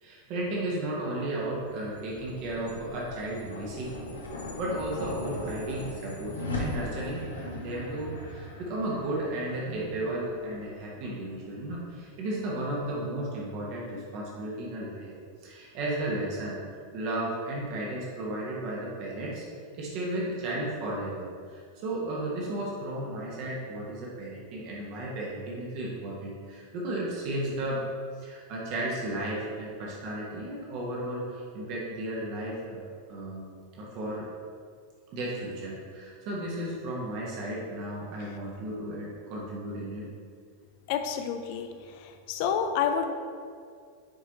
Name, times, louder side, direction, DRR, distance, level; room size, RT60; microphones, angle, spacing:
voice 1, 0.0-15.1 15.4-16.6 16.9-19.4 19.7-27.8 28.2-33.5 33.7-34.3 35.1-40.1 42.9-43.1, right 1 dB, 45° right, -4 dB, 1.5 m, -34 dB
sound 1, 1.5-12.0, left 2 dB, 75° left, 1.4 m, -39 dB
voice 2, 40.9-41.7 42.3-43.1, left 7 dB, 45° left, 6 dB, 0.7 m, -28 dB
10.5 x 4.8 x 3.0 m, 2.1 s
figure-of-eight pair, 90°, 0 cm